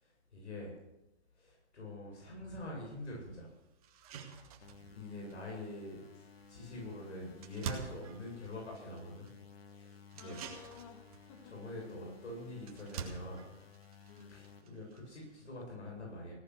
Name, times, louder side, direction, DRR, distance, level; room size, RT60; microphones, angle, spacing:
voice 1, 0.0-0.8 1.4-3.5 4.9-9.3 9.7-10.4 11.4-13.4 14.3-16.3, left 1 dB, 90° left, -2 dB, 7.8 m, -45 dB
sound 1, 2.8-2.9 3.4-3.5 3.8-15.5, right 7 dB, 30° right, 2.2 m, -49 dB
sound 2, 4.6-14.6, left 6 dB, 60° left, 1.8 m, -57 dB
voice 2, 10.2-11.9 14.1-14.4, left 7 dB, 30° left, 6 dB, 1.9 m, -55 dB
17.5 x 11.5 x 6.4 m, 0.93 s
hypercardioid pair, 165°, 34 cm